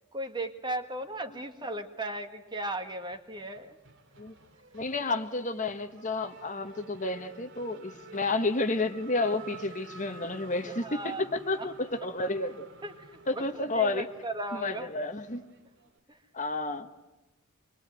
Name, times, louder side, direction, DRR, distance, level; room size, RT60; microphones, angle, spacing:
voice 1, 0.1-3.8 10.7-11.3 11.6-11.7 12.8-14.9 16.1-16.2, right 1 dB, 20° right, 7 dB, 1.7 m, -37 dB
Race car auto racing / Accelerating revving vroom, 1.0-2.0 2.3-16.0, right 4 dB, 60° right, 2.3 m, -52 dB
voice 2, 4.7-12.7 13.3-14.1 14.5-15.4 16.3-16.9, left 2 dB, 35° left, 8 dB, 1.3 m, -31 dB
25.5 x 23.0 x 9.2 m, 1.0 s
head